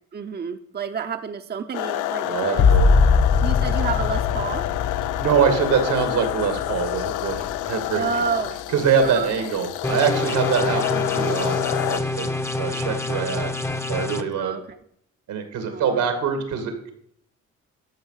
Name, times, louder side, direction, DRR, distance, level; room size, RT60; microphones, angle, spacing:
voice 1, 0.1-2.7 3.4-4.6 7.9-8.6 9.0-9.5 14.4-14.8 15.6-16.0, right 6 dB, 35° right, 7 dB, 0.7 m, -30 dB
sound 1, 1.7-12.0, left 15 dB, 90° left, 0.5 m, -28 dB
voice 2, 2.2-2.9 5.2-8.0 8.7-12.3 12.5-13.5 13.9-14.6 15.3-16.9, right 6 dB, 85° right, 7 dB, 2.2 m, -24 dB
sound 2, 2.6-8.0 8.5-9.1, left 5 dB, 65° left, 1.3 m, -22 dB
sound 3, 9.8-14.2, left 2 dB, 10° left, 0.8 m, -26 dB
13.5 x 5.7 x 5.7 m, 0.68 s
cardioid pair, 90°, 30 cm